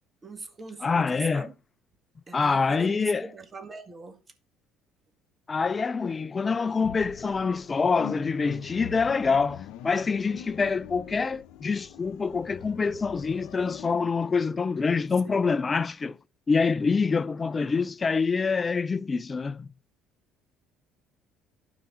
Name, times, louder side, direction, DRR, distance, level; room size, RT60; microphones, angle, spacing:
voice 1, 0.2-1.5 2.3-4.2 15.2-15.5, right 4 dB, 25° right, 2.0 m, -42 dB
voice 2, 0.8-1.5 2.3-3.3 5.5-16.2 16.5-19.7, left 5 dB, 25° left, 0.5 m, -26 dB
sound 1, 6.8-14.0, left 11 dB, 75° left, 0.7 m, -43 dB
12.0 x 4.8 x 4.7 m
supercardioid pair, 90°, 0 cm